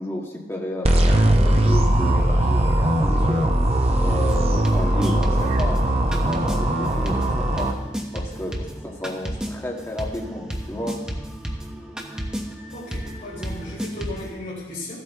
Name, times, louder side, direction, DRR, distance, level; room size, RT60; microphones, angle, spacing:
voice 1, 0.0-3.5 4.0-5.8 6.1-7.7 8.1-11.0, left 1 dB, 15° left, -2 dB, 1.6 m, -32 dB
sound 1, 0.8-7.7, right 1 dB, 35° right, 0.8 m, -19 dB
sound 2, 4.2-14.3, equal, 5° right, 0.9 m, -33 dB
voice 2, 12.7-15.0, left 1 dB, 45° left, -8 dB, 3.8 m, -35 dB
14.0 x 8.1 x 3.6 m, 1.1 s
head